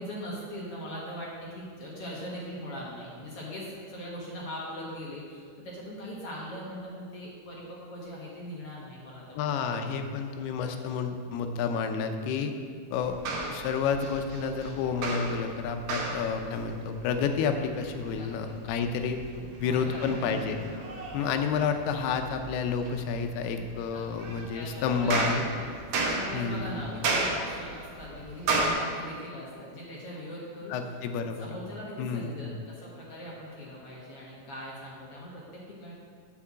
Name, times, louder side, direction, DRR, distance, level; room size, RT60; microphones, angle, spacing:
voice 1, 0.0-9.7 10.6-10.7 11.5-11.6 18.1-18.6 19.3-20.3 20.7-20.9 23.9-24.3 24.5-25.3 26.0-31.0 31.4-35.9, equal, 50° left, -5 dB, 1.8 m, -41 dB
voice 2, 9.4-12.5 12.9-13.2 13.5-19.2 19.6-20.6 21.1-25.5 26.3-26.8 30.7-31.5 32.0-32.5, left 6 dB, 85° left, 6 dB, 2.7 m, -30 dB
sound 1, 12.9-28.7, right 3 dB, 65° right, 1.8 m, -35 dB
8.3 x 5.9 x 7.4 m, 2.1 s
omnidirectional pair, 4.5 m